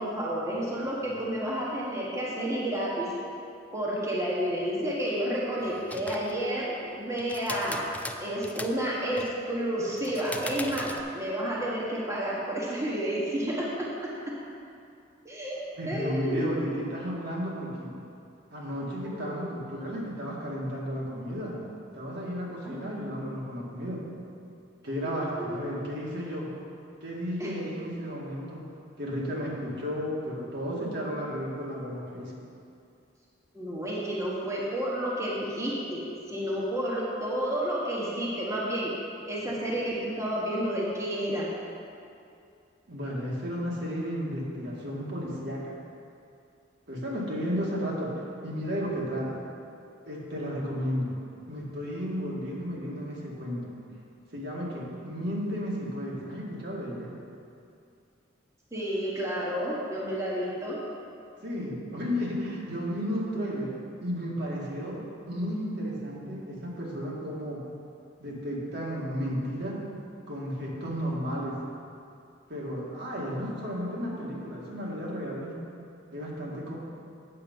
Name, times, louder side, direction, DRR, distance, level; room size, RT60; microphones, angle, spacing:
voice 1, 0.0-3.1 3.7-7.8 8.2-13.9 15.2-15.6 15.9-16.9 19.3-19.4 22.6-22.9 25.0-25.6 27.4-27.5 33.5-38.9 39.3-41.5 58.7-60.8, right 1 dB, 15° right, -6 dB, 1.4 m, -30 dB
sound 1, 5.6-6.4 7.2-8.8 9.1-9.4 9.9-11.0, left 2 dB, 10° left, 0.4 m, -39 dB
voice 2, 15.8-17.9 18.5-21.6 21.9-24.0 24.8-26.5 27.0-28.7 29.0-32.3 42.9-45.7 46.9-49.4 50.1-51.2 51.5-53.7 54.3-57.1 61.4-63.7 64.0-65.0 65.3-67.7 68.2-69.8 70.3-71.6 72.5-75.5 76.1-76.7, equal, 65° right, -5 dB, 2.0 m, -33 dB
8.7 x 7.1 x 5.4 m, 2.5 s
head